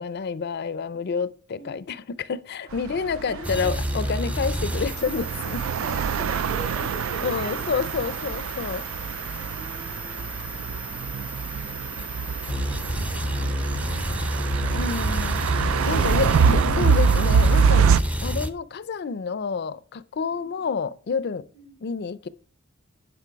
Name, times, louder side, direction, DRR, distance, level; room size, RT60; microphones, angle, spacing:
voice 1, 0.0-5.7 7.2-8.8 14.7-15.4 15.9-17.9 18.2-21.4 21.8-22.3, left 5 dB, 55° left, 0.4 m, -29 dB
voice 2, 1.5-1.8 2.7-2.8 3.2-3.8 5.8-7.9 9.4-10.3 10.9-11.3 12.2-12.9 13.5-15.2 20.2-20.6 21.5-21.8, right 2 dB, 60° right, 5.0 m, -42 dB
sound 1, 2.8-18.0, right 6 dB, 80° right, 0.4 m, -25 dB
sound 2, 3.4-18.5, equal, 5° right, 0.5 m, -30 dB
10.5 x 5.3 x 4.6 m
head